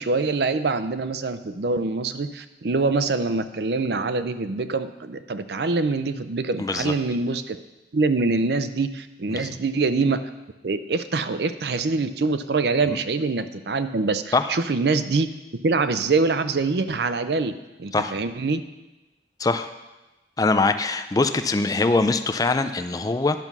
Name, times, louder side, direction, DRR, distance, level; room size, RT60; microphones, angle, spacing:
voice 1, 0.0-7.6 7.9-10.2 10.6-15.3 15.6-17.5 17.8-18.6, right 3 dB, 65° right, 11 dB, 0.5 m, -24 dB
voice 2, 6.6-6.9 9.3-9.5 12.9-13.0 14.3-14.5 17.9-18.1 19.4-19.7 20.4-23.4, left 3 dB, 20° left, 10 dB, 0.4 m, -22 dB
10.5 x 5.4 x 6.0 m, 1.0 s
head